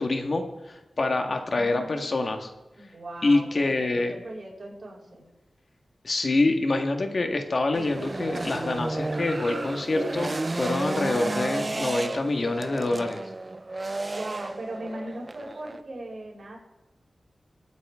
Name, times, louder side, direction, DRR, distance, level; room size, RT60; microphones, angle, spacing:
voice 1, 0.0-2.5 3.2-4.1 6.0-13.2, left 2 dB, 55° left, 5 dB, 1.6 m, -26 dB
voice 2, 1.3-2.3 2.8-5.2 14.1-16.6, right 1 dB, 65° right, -3 dB, 5.8 m, -39 dB
sound 1, 7.7-15.8, right 2 dB, 35° right, 0.5 m, -32 dB
24.5 x 9.5 x 3.7 m, 1.1 s
wide cardioid pair, 70°, 0 cm